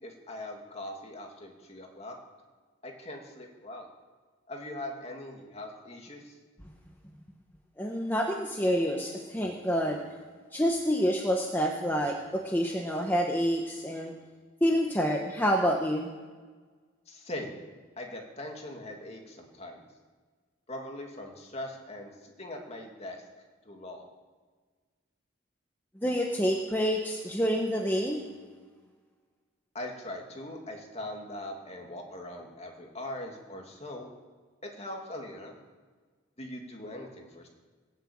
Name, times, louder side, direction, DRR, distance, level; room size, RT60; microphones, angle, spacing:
voice 1, 0.0-2.2 2.8-3.9 4.5-6.3 17.1-17.6 18.0-19.8 20.7-23.2 23.7-24.1 29.7-34.1 34.6-35.6 36.4-37.5, left 1 dB, 30° left, 2 dB, 2.4 m, -41 dB
voice 2, 7.8-10.0 10.5-14.1 14.6-16.1 26.0-28.2, equal, 10° left, 1 dB, 1.1 m, -28 dB
20.5 x 7.8 x 8.7 m, 1.5 s
head